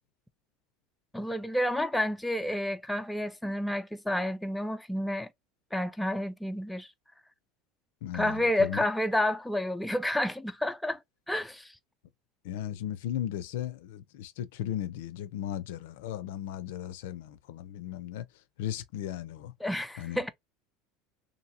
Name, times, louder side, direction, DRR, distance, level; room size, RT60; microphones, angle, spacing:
voice 1, 1.1-5.3 5.7-6.9 8.1-11.0 11.3-11.7 19.6-20.3, left 1 dB, 5° left, 0.4 m, -30 dB
voice 2, 8.0-8.8 12.4-18.3 18.6-19.5 20.0-20.2, left 11 dB, 80° left, 0.4 m, -36 dB
2.9 x 2.6 x 2.6 m
supercardioid pair, 115°, 0 cm